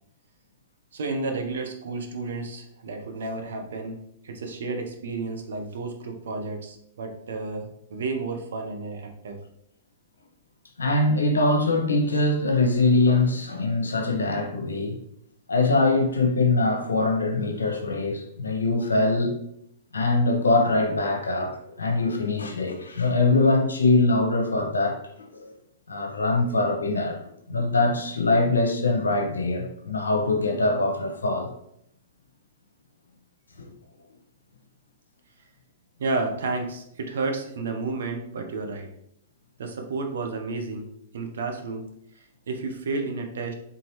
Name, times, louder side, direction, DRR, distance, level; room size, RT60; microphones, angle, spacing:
voice 1, 0.9-9.4 36.0-38.9 39.6-40.9 41.1-41.8 42.2-43.5, right 3 dB, 70° right, 0.8 m, -31 dB
voice 2, 10.8-15.0 15.5-19.3 19.9-25.5 25.9-27.2 27.5-31.5 33.6-33.7, left 2 dB, 85° left, 0.8 m, -23 dB
3.9 x 3.7 x 3.0 m
hypercardioid pair, 110°, 0 cm